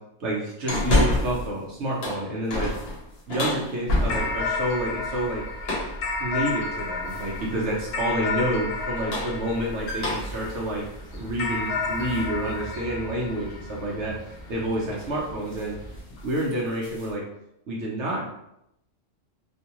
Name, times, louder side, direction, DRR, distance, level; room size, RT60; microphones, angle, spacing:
voice 1, 0.2-2.7 3.3-5.4 6.2-10.8 11.1-15.8 16.2-17.2 17.7-18.3, right 1 dB, 65° right, -4 dB, 1.0 m, -29 dB
sound 1, 0.7-1.5 1.9-4.5 5.6-6.0 7.1-7.5 8.8-12.3 12.7-12.8 14.4-14.6 14.9-15.2 15.5-15.7 16.1-17.1, left 1 dB, 55° left, 1.2 m, -28 dB
sound 2, 4.1-10.7 11.4-14.1, left 4 dB, 85° left, 1.0 m, -31 dB
sound 3, 4.1-16.0, equal, 10° left, 1.0 m, -41 dB
3.5 x 2.7 x 2.9 m, 0.80 s
omnidirectional pair, 1.3 m